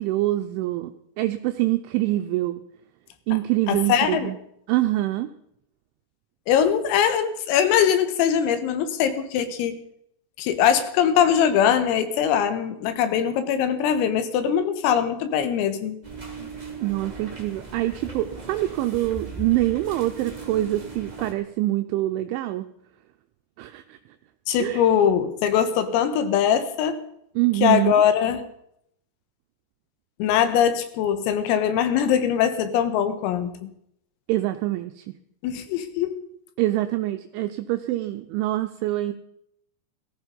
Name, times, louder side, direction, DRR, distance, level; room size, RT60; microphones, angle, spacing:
voice 1, 0.0-2.6 3.3-4.4 4.7-5.3 16.8-22.7 23.6-24.0 24.6-24.8 27.4-28.0 34.3-35.2 36.6-39.1, right 16 dB, 80° right, 8 dB, 2.9 m, -25 dB
voice 2, 3.7-4.3 6.5-9.8 10.4-16.0 24.5-27.0 27.6-28.4 30.2-33.7 35.4-36.2, left 9 dB, 85° left, 10 dB, 4.1 m, -22 dB
sound 1, 16.0-21.3, right 4 dB, 35° right, 0.6 m, -38 dB
18.0 x 14.5 x 5.3 m, 0.73 s
omnidirectional pair, 5.9 m